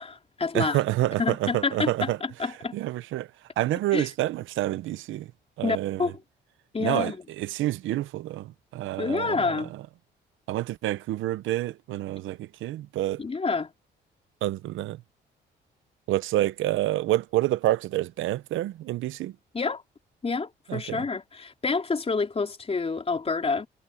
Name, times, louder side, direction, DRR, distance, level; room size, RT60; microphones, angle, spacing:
voice 1, 0.0-0.8 1.2-2.7 3.9-4.1 5.6-6.1 6.7-7.2 9.0-9.7 13.2-13.7 19.5-19.8 20.2-23.7, left 4 dB, 30° left, 3.9 m, -28 dB
voice 2, 0.5-2.2 2.7-3.3 3.6-5.3 5.6-6.1 6.8-9.7 10.5-13.2 14.4-15.0 16.1-19.3 20.7-21.0, right 15 dB, 85° right, 0.8 m, -28 dB
cardioid pair, 90°, 20 cm